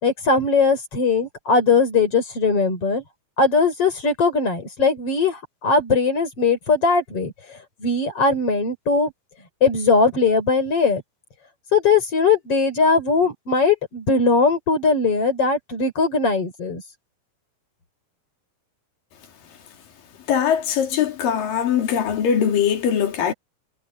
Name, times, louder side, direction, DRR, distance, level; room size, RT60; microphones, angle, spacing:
voice 1, 0.0-3.0 3.4-7.3 7.8-9.1 9.6-11.0 11.7-16.8, left 4 dB, 45° left, 5.4 m, -20 dB
voice 2, 20.3-23.3, left 8 dB, 85° left, 4.3 m, -21 dB
omnidirectional pair, 3.8 m